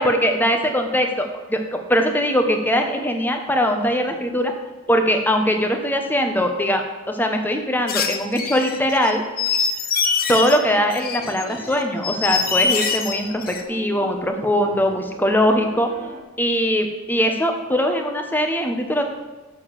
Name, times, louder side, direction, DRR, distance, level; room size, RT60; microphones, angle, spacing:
voice 1, 0.0-4.5 4.9-6.8 7.1-9.2 10.3-15.9 16.4-19.0, equal, 10° left, 4 dB, 1.0 m, -21 dB
sound 1, 7.9-10.6 10.9-13.6, left 6 dB, 45° left, 0.8 m, -24 dB
Piano, 9.2-16.2, right 1 dB, 40° right, 1.2 m, -42 dB
6.9 x 6.8 x 7.4 m, 1.3 s
head